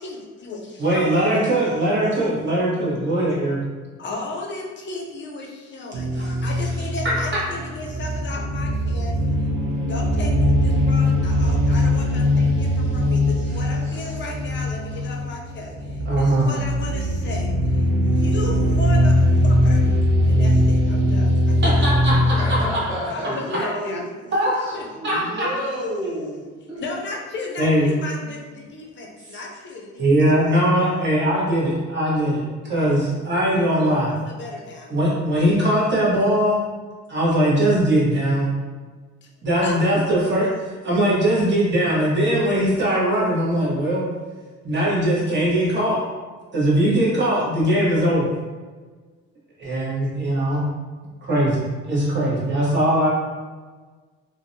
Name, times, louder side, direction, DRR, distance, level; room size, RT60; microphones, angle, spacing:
voice 1, 0.0-1.2 3.2-3.3 4.0-9.2 9.9-10.3 10.6-20.0 20.3-22.2 23.1-24.0 24.7-24.9 26.8-30.4 32.7-33.1 33.7-34.9 39.2-39.3 39.6-39.8, left 3 dB, 40° left, 0 dB, 0.5 m, -35 dB
voice 2, 0.8-3.6 6.2-6.3 7.0-7.1 16.1-16.5 21.6-22.6 24.3-24.8 25.0-25.5 27.6-27.9 30.0-34.1 34.9-36.6 37.1-38.5 39.4-40.5 40.8-44.0 44.6-46.0 46.5-48.3 49.6-50.6 51.2-53.1, right 1 dB, 35° right, -6 dB, 1.0 m, -20 dB
sound 1, 5.9-22.6, left 1 dB, 80° right, 0.5 m, -20 dB
voice 3, 22.3-24.0 24.7-26.8, equal, 15° right, -10 dB, 0.6 m, -30 dB
2.5 x 2.1 x 2.6 m, 1.4 s
cardioid pair, 90°, 30 cm